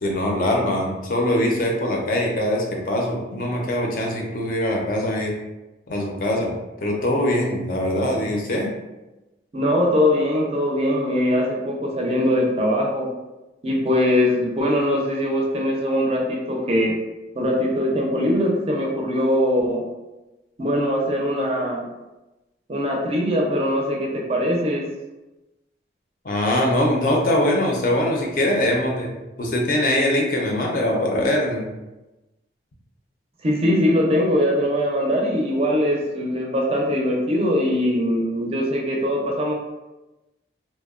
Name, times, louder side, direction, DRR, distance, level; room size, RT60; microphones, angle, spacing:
voice 1, 0.0-5.3 5.9-6.5 6.8-8.7 26.2-29.1 29.4-31.7, left 1 dB, 45° left, 0 dB, 0.5 m, -22 dB
voice 2, 9.5-13.1 13.6-16.9 17.3-19.8 20.6-21.8 22.7-24.8 33.4-39.5, equal, 30° right, -1 dB, 0.4 m, -21 dB
2.8 x 2.0 x 2.3 m, 1.0 s
head